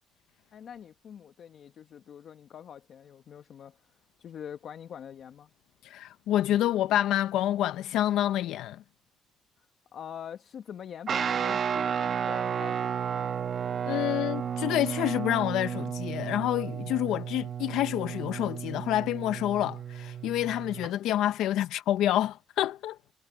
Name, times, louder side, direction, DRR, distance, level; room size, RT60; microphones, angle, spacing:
voice 1, 0.5-3.8 4.2-5.5 9.9-13.3, left 8 dB, 65° left, 1.1 m, -44 dB
voice 2, 5.8-8.8 13.8-23.0, left 13 dB, 90° left, 0.6 m, -28 dB
Guitar, 11.1-20.9, right 8 dB, 55° right, 1.1 m, -32 dB
cardioid pair, 90°, 0 cm